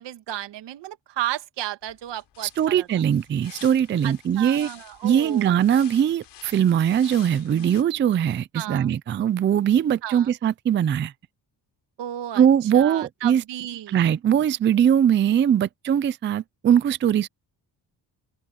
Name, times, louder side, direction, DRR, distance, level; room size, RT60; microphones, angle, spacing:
voice 1, 0.0-2.9 4.0-5.6 7.4-7.7 8.5-8.9 10.0-10.3 12.0-14.0, right 12 dB, 85° right, 1.7 m, -33 dB
sound 1, 1.8-7.8, left 12 dB, 75° left, 3.9 m, -48 dB
voice 2, 2.6-4.7 5.0-11.1 12.3-13.4 13.9-17.3, right 9 dB, 30° right, 0.4 m, -21 dB
open air
cardioid pair, 155°, 41 cm